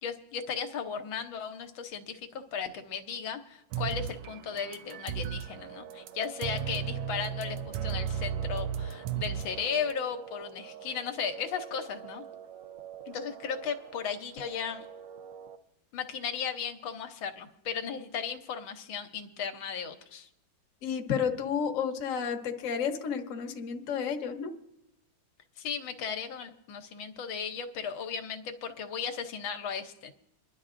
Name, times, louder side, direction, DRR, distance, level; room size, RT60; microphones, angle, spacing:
voice 1, 0.0-12.2 13.1-14.9 15.9-20.3 25.6-30.1, left 7 dB, 80° left, 6 dB, 1.6 m, -36 dB
sound 1, 3.7-5.6 5.9-9.9, right 8 dB, 85° right, 1.4 m, -35 dB
sound 2, 5.4-15.6, right 9 dB, 65° right, 0.8 m, -47 dB
voice 2, 20.8-24.5, left 7 dB, 50° left, 4 dB, 1.1 m, -31 dB
27.5 x 11.0 x 2.5 m, 0.80 s
omnidirectional pair, 2.2 m